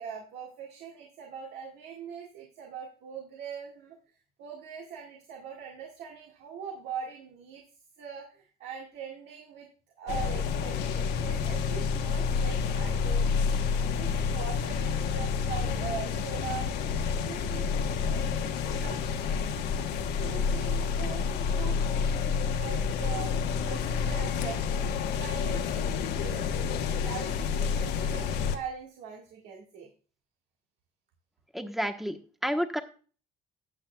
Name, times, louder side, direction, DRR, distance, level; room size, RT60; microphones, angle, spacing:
voice 1, 0.0-4.0 4.4-7.6 8.0-9.7 10.0-13.3 13.9-16.7 17.2-19.4 20.2-23.3 23.7-26.6 27.0-29.9, right 7 dB, 80° right, -1 dB, 1.8 m, -42 dB
sound 1, 10.1-28.6, left 6 dB, 75° left, 1.1 m, -29 dB
voice 2, 31.5-32.8, equal, ahead, 7 dB, 1.1 m, -30 dB
13.5 x 8.8 x 2.3 m, 0.39 s
cardioid pair, 110°, 17 cm